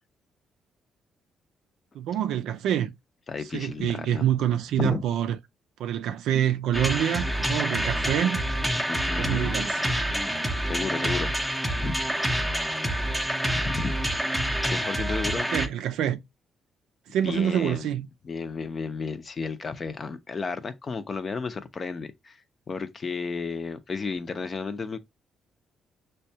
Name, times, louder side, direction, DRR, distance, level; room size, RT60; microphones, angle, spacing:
voice 1, 1.9-2.9 3.5-5.3 5.8-8.4 9.2-9.8 15.5-16.2 17.1-18.1, right 10 dB, 85° right, 0.4 m, -26 dB
voice 2, 3.3-4.2 4.8-5.0 8.9-9.5 10.7-11.3 11.7-12.1 13.5-14.0 14.7-15.5 17.2-17.9 18.2-25.0, left 4 dB, 35° left, 0.6 m, -33 dB
sound 1, 6.7-15.7, right 1 dB, 5° right, 0.6 m, -27 dB
6.2 x 2.2 x 2.7 m
cardioid pair, 90°, 0 cm